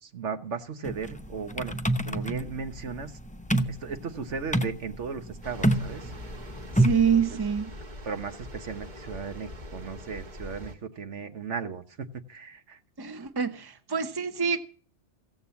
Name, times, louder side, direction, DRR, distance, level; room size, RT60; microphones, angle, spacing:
voice 1, 0.0-1.8 2.1-3.2 3.6-6.1 7.1-7.2 8.0-12.8, right 5 dB, 75° right, 9 dB, 1.5 m, -36 dB
sound 1, 0.8-7.2, right 1 dB, 10° left, 0.6 m, -28 dB
sound 2, 5.4-10.7, left 1 dB, 40° right, 1.7 m, -42 dB
voice 2, 6.7-7.7 13.0-14.6, right 6 dB, 20° right, 7 dB, 1.0 m, -26 dB
16.0 x 7.9 x 7.0 m, 0.43 s
omnidirectional pair, 1.2 m